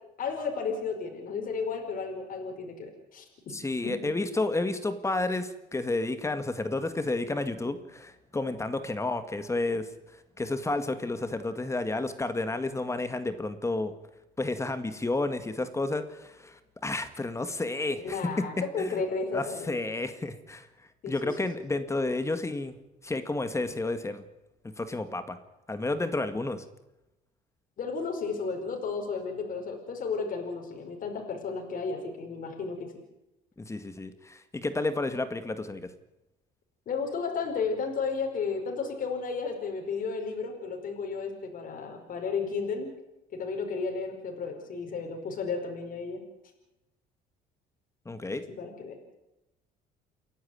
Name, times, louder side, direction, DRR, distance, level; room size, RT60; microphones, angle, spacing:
voice 1, 0.2-3.2 3.8-3.9 17.9-19.7 21.0-21.4 27.8-32.9 36.8-42.9 43.4-46.2 48.6-49.0, left 5 dB, 55° left, 2 dB, 5.1 m, -33 dB
voice 2, 3.5-9.9 10.4-13.9 14.4-18.2 18.8-18.9 19.3-20.7 21.1-22.8 23.0-24.2 24.8-25.4 25.7-26.6 33.6-35.9 48.1-48.4, left 2 dB, 15° left, 10 dB, 1.9 m, -31 dB
29.0 x 11.5 x 9.5 m, 0.95 s
cardioid pair, 110°, 17 cm